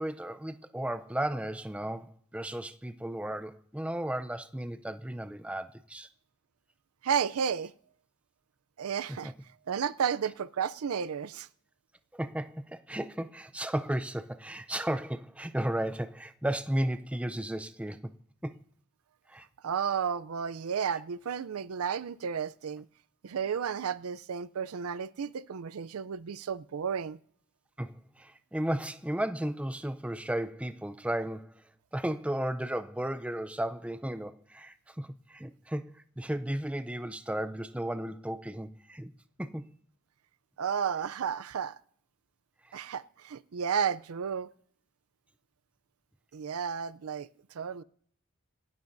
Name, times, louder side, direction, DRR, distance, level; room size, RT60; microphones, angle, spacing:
voice 1, 0.0-6.1 9.1-9.3 12.1-18.1 18.4-18.6 19.3-19.5 27.8-39.1 39.4-39.7 42.6-42.8, right 1 dB, 5° right, 0.5 m, -34 dB
voice 2, 7.0-7.7 8.8-9.3 9.7-11.5 19.6-22.9 23.2-27.2 40.6-41.8 42.7-44.5 46.3-47.3 47.5-47.8, right 7 dB, 80° right, 0.5 m, -32 dB
27.0 x 12.5 x 2.6 m
head